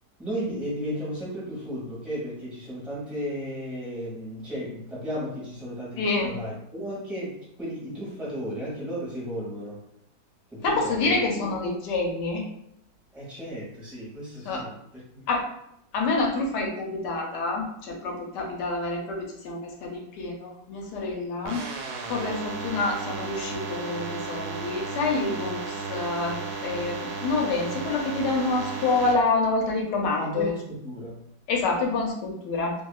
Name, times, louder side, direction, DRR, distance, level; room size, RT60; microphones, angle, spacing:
voice 1, 0.2-9.8 10.5-11.5 13.1-15.3 30.2-31.2, equal, ahead, -7 dB, 0.8 m, -34 dB
voice 2, 6.0-6.3 10.6-12.4 14.5-14.6 15.3-15.5 15.9-21.6 22.1-30.5 31.5-32.7, left 3 dB, 85° left, 0 dB, 1.2 m, -27 dB
sound 1, 21.4-29.1, right 4 dB, 75° right, 1.1 m, -34 dB
2.7 x 2.7 x 2.3 m, 0.76 s
omnidirectional pair, 1.8 m